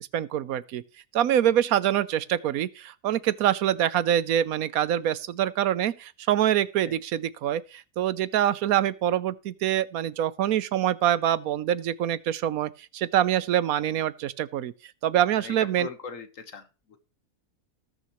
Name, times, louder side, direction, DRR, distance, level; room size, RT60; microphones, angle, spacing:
voice 1, 0.1-0.8 1.1-14.7 15.0-15.9, right 11 dB, 85° right, 1.2 m, -25 dB
voice 2, 15.4-17.0, left 5 dB, 65° left, 1.7 m, -40 dB
19.5 x 6.5 x 3.1 m
omnidirectional pair, 1.5 m